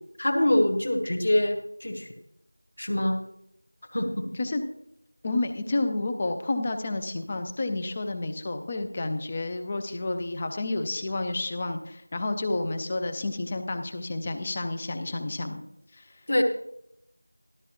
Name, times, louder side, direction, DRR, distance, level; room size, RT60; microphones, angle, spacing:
voice 1, 0.2-2.1 2.8-3.2 3.9-4.3 16.3-16.4, left 1 dB, 30° left, 5 dB, 1.2 m, -24 dB
voice 2, 5.2-15.6 15.9-16.1, left 2 dB, 10° left, 7 dB, 0.4 m, -30 dB
13.5 x 12.5 x 2.9 m, 0.76 s
figure-of-eight pair, 175°, 0 cm